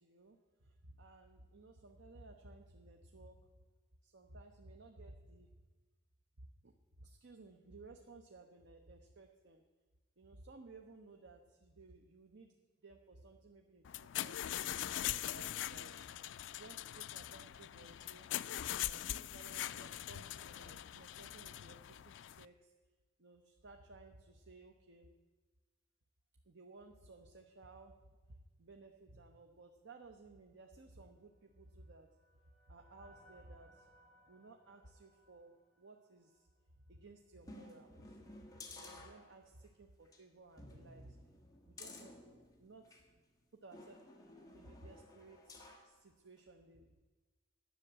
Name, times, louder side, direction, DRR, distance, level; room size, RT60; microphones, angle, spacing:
voice 1, 0.0-3.5 4.0-5.5 6.4-6.7 7.0-9.6 10.2-12.5 12.8-14.4 14.9-16.1 16.6-18.3 18.8-22.7 23.2-25.1 26.4-32.1 32.7-33.9 34.3-35.5 35.8-36.5 36.9-38.2 38.5-41.2 41.6-43.2 43.5-44.0 44.5-47.0, right 2 dB, 85° right, 4 dB, 0.8 m, -58 dB
sound 1, 13.8-22.5, left 12 dB, 90° left, 0.3 m, -42 dB
sound 2, 31.3-36.6, equal, ahead, 2.5 m, -68 dB
sound 3, 37.4-39.7 40.1-40.2 40.6-43.1 43.7-45.9 46.4-46.5, left 2 dB, 20° left, 1.5 m, -55 dB
10.5 x 6.6 x 8.7 m, 1.3 s
head